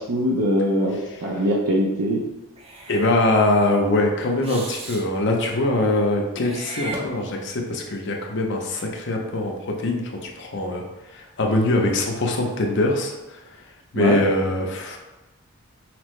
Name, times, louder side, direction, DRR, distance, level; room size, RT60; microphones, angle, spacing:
voice 1, 0.0-2.2 14.0-14.2, equal, 85° right, -4 dB, 0.6 m, -22 dB
Meow / Hiss, 2.6-3.2 4.4-5.1 6.4-7.6, right 2 dB, 25° right, 0.4 m, -36 dB
voice 2, 2.9-10.8 11.1-13.1 13.9-15.0, left 2 dB, 55° left, 1 dB, 0.6 m, -22 dB
5.7 x 2.0 x 3.1 m, 1.1 s
head